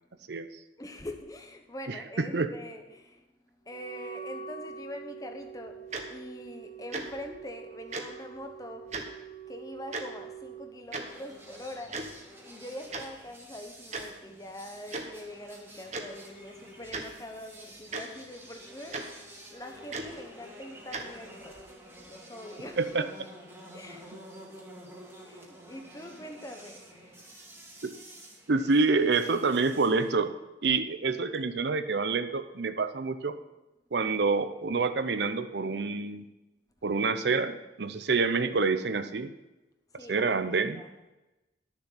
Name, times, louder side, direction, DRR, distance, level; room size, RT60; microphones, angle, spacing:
voice 1, 0.8-8.9 9.5-12.0 12.4-23.1 23.7-24.1 25.0-27.2 39.9-40.9, left 1 dB, 20° left, 5 dB, 1.0 m, -44 dB
voice 2, 2.2-2.5 22.8-23.0 27.8-27.9 28.5-30.3 30.6-33.4 33.9-36.3 36.8-39.3 40.1-40.8, right 4 dB, 60° right, 10 dB, 0.6 m, -27 dB
Wind instrument woodwind instrument, 3.7-10.7, right 7 dB, 50° left, 3.0 m, -45 dB
Tick-tock, 5.9-6.0 6.9-7.0 7.9-8.0 8.9-9.0 9.9-10.0 10.9-11.0 11.9-12.1 12.9-13.0 13.9-14.0 14.9-15.0 15.9-16.0 16.9-17.0 17.9-18.0 18.9-19.0 19.9-20.1 20.9-21.0, right 3 dB, 40° right, 1.1 m, -34 dB
sound 1, 11.0-30.1, equal, 10° right, 2.0 m, -50 dB
11.5 x 7.0 x 5.7 m, 1.0 s
head